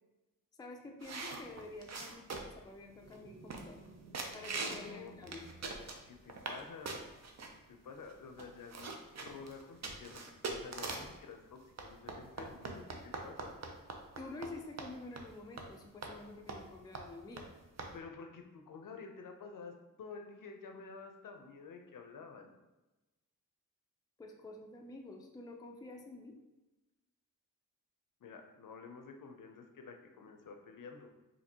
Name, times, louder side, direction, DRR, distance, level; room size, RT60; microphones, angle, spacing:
voice 1, 0.6-3.8 4.3-5.4 14.2-17.5 24.2-26.4, left 2 dB, 10° left, 2 dB, 0.3 m, -49 dB
sound 1, 1.0-2.6 3.1-3.2 3.5-3.9 4.1-4.9 5.2-6.6 6.8-7.5 8.1-8.2 8.4-11.2 11.8-14.5 14.8-14.9 15.2-15.3 15.6-15.7 16.0-16.1 16.5-16.7 16.9-17.0 17.4-17.5 17.8-17.9, right 3 dB, 50° right, 0.5 m, -42 dB
sound 2, 2.9-6.6, right 2 dB, 80° right, 0.8 m, -57 dB
voice 2, 4.7-5.2 6.0-7.0 7.7-13.6 17.9-22.5 28.2-31.1, left 5 dB, 70° left, 4 dB, 0.5 m, -50 dB
4.3 x 2.7 x 2.7 m, 1.1 s
wide cardioid pair, 115°, 34 cm